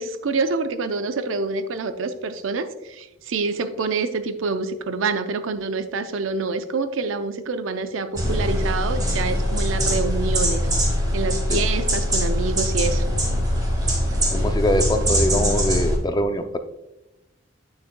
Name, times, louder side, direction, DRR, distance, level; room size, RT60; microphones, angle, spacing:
voice 1, 0.0-10.7 11.1-13.1, right 4 dB, 85° right, 10 dB, 0.5 m, -26 dB
sound 1, 8.1-16.0, equal, 20° right, 1.8 m, -22 dB
voice 2, 14.3-16.6, left 1 dB, 20° left, 8 dB, 0.4 m, -23 dB
8.5 x 6.6 x 2.2 m, 0.96 s
head